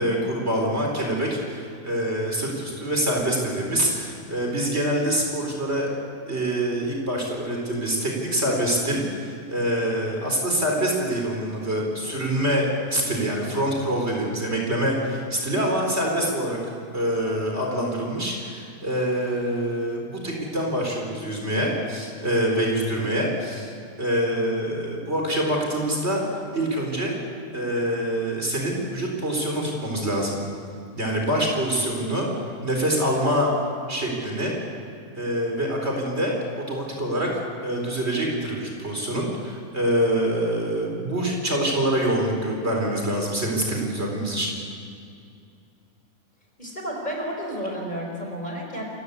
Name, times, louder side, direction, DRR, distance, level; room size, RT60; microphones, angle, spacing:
voice 1, 0.0-5.9 6.3-16.6 16.9-23.7 24.0-26.2 26.5-27.2 27.5-30.4 30.9-32.3 32.6-33.5 33.9-34.5 35.1-37.3 37.6-44.5, right 1 dB, 45° right, 0 dB, 4.6 m, -25 dB
voice 2, 46.6-48.9, equal, 30° left, 0 dB, 4.8 m, -31 dB
28.5 x 16.0 x 8.2 m, 2.4 s
omnidirectional pair, 1.5 m